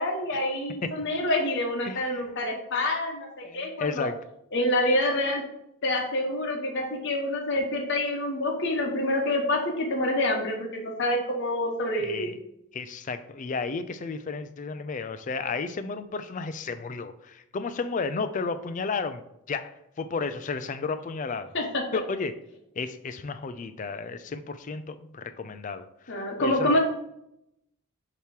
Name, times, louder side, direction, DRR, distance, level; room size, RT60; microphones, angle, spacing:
voice 1, 0.0-4.1 4.5-5.4 5.8-12.3 21.5-21.8 26.1-26.8, left 1 dB, 50° left, 0 dB, 0.9 m, -27 dB
voice 2, 1.8-2.2 3.4-4.2 12.0-12.4 12.7-19.2 19.5-19.7 20.0-21.5 21.9-22.3 22.8-25.9 26.4-26.8, left 4 dB, 35° left, 11 dB, 0.3 m, -32 dB
6.7 x 3.0 x 4.7 m, 0.80 s
head